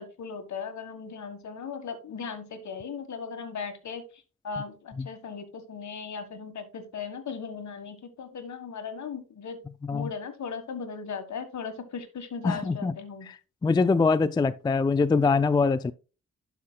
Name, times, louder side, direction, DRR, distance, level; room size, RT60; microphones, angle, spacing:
voice 1, 0.0-9.6 9.9-13.3, left 5 dB, 60° left, 1.5 m, -37 dB
voice 2, 12.4-12.9 13.3-15.9, left 4 dB, 15° left, 0.3 m, -24 dB
11.5 x 5.6 x 2.2 m
cardioid pair, 70°, 32 cm